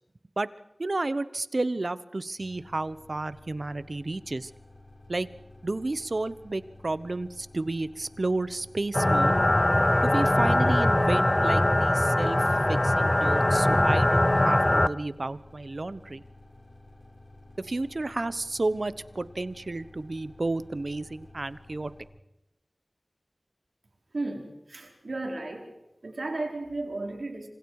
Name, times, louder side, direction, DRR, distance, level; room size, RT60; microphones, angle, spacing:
voice 1, 0.8-4.5 5.1-5.3 5.6-9.4 10.0-12.4 12.7-16.2 17.6-21.9, right 2 dB, 65° right, 15 dB, 1.0 m, -31 dB
sound 1, 2.4-22.1, left 2 dB, 50° left, 6.7 m, -52 dB
sound 2, 8.9-14.9, left 1 dB, 30° left, 0.9 m, -22 dB
voice 2, 24.1-25.7 26.0-27.5, right 2 dB, 85° right, 2 dB, 4.5 m, -34 dB
27.5 x 26.5 x 4.9 m, 0.91 s
wide cardioid pair, 40°, 0 cm